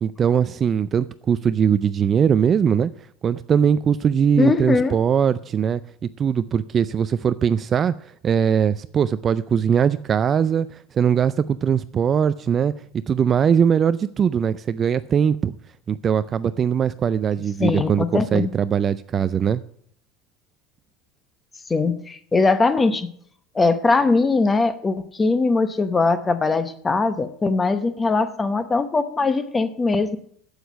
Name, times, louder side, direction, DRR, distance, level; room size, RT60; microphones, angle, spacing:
voice 1, 0.0-2.9 3.2-5.8 6.2-7.9 8.2-12.7 13.1-15.6 15.9-19.6, right 7 dB, 25° right, 0.3 m, -20 dB
voice 2, 4.4-5.0 17.6-18.5 21.7-23.1 23.5-30.2, left 3 dB, 15° left, 0.9 m, -21 dB
8.1 x 8.0 x 8.3 m
cardioid pair, 150°, 0 cm